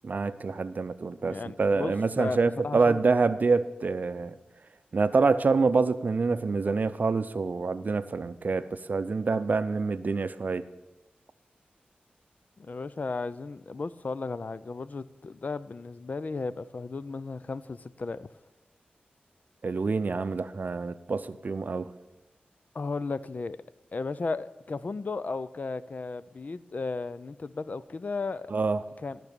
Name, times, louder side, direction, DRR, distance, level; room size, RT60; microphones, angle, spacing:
voice 1, 0.0-4.4 4.9-10.6 19.6-21.9 28.5-28.8, right 4 dB, 55° right, 12 dB, 0.5 m, -26 dB
voice 2, 1.3-2.4 2.6-3.0 12.6-18.3 22.7-23.6 23.9-28.5 29.0-29.2, left 3 dB, 50° left, 15 dB, 0.4 m, -35 dB
13.0 x 6.1 x 6.8 m, 1.1 s
cardioid pair, 60°, 3 cm